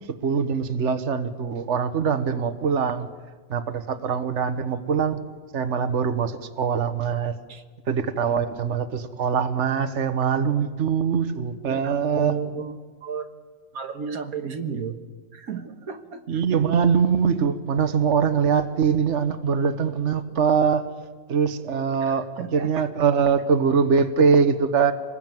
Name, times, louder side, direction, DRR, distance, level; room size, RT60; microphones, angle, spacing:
voice 1, 0.2-3.1 3.5-5.2 5.5-7.3 7.9-12.4 16.3-20.9 21.3-24.9, right 6 dB, 55° right, 9 dB, 1.5 m, -23 dB
voice 2, 11.7-13.3 13.7-15.0 15.3-16.4 22.1-22.9, right 6 dB, 80° right, 6 dB, 1.8 m, -33 dB
25.5 x 20.0 x 9.2 m, 1.5 s
omnidirectional pair, 1.5 m